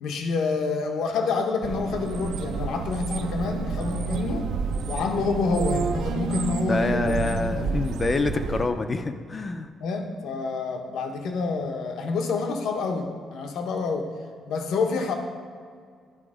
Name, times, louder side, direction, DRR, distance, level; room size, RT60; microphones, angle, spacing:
voice 1, 0.0-4.5 4.9-7.7 9.8-14.1 14.5-15.2, left 4 dB, 75° left, 4 dB, 0.8 m, -27 dB
sound 1, 1.6-8.7, right 5 dB, 70° right, 0.4 m, -30 dB
voice 2, 6.7-9.7, left 3 dB, 20° left, 8 dB, 0.3 m, -26 dB
11.0 x 4.2 x 4.9 m, 2.1 s
cardioid pair, 180°, 0 cm